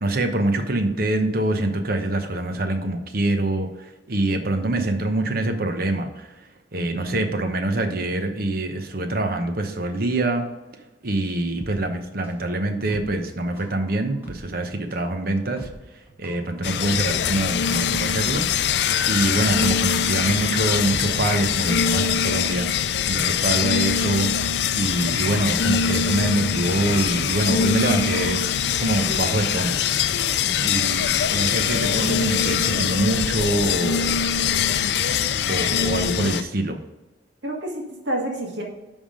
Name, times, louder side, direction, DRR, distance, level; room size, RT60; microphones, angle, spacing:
voice 1, 0.0-10.5 11.0-15.7 16.2-18.5 19.0-22.7 23.1-24.3 24.7-28.4 28.8-30.1 30.6-34.2 35.5-36.8, right 2 dB, 55° right, 6 dB, 0.9 m, -25 dB
voice 2, 6.7-7.3 30.4-30.8 37.4-38.6, right 1 dB, 75° right, -1 dB, 1.7 m, -30 dB
sound 1, 11.6-21.8 22.1-22.2, equal, 15° right, 1.8 m, -41 dB
sound 2, 16.6-36.4, left 7 dB, 60° left, 0.4 m, -23 dB
10.5 x 3.6 x 5.0 m, 1.1 s
head